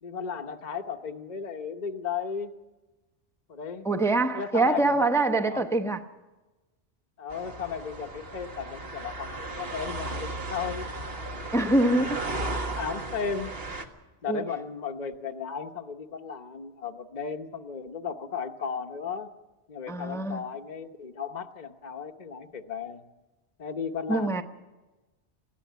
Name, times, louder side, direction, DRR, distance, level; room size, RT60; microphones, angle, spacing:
voice 1, 0.0-2.5 3.5-3.9 4.3-5.1 5.5-6.0 7.2-10.9 11.2-11.4 12.5-13.5 14.2-19.3 19.7-23.0 23.6-24.4, left 6 dB, 40° left, 1.1 m, -35 dB
voice 2, 3.8-6.0 11.5-12.4 14.3-14.4 19.9-20.4 24.1-24.4, right 2 dB, 5° left, 0.8 m, -24 dB
sound 1, 7.3-13.9, right 2 dB, 60° right, 1.9 m, -35 dB
20.0 x 16.0 x 9.2 m
omnidirectional pair, 1.2 m